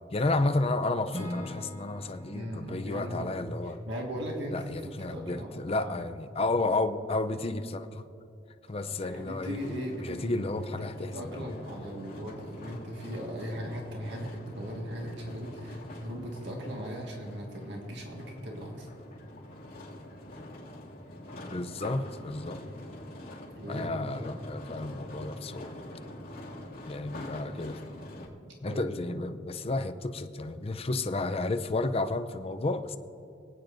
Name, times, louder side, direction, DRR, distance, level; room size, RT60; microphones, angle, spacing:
voice 1, 0.1-3.8 4.5-8.0 8.7-9.6 10.0-11.6 21.4-22.6 23.7-25.8 26.9-27.8 28.6-33.0, left 2 dB, 35° left, 7 dB, 0.6 m, -32 dB
Acoustic guitar / Strum, 1.1-5.1, left 1 dB, 40° right, 2.6 m, -43 dB
voice 2, 2.3-3.3 3.6-6.0 9.0-10.5 10.8-18.9 23.6-24.2 28.5-28.8, equal, 75° right, 0 dB, 1.7 m, -38 dB
sound 1, 8.8-28.3, left 1 dB, 55° left, 2.5 m, -45 dB
26.0 x 9.0 x 2.7 m, 2.9 s
head